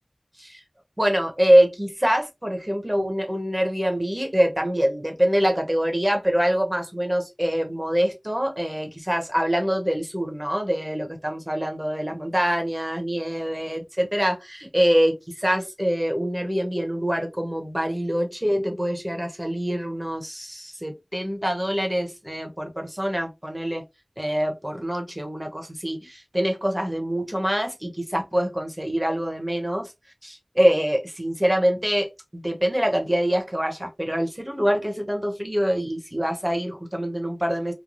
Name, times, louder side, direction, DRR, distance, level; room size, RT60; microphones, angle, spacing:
voice 1, 1.0-23.8 24.2-29.9 30.2-37.7, equal, 15° right, 1.1 m, -24 dB
3.2 x 2.3 x 2.5 m
wide cardioid pair, 45°, 0 cm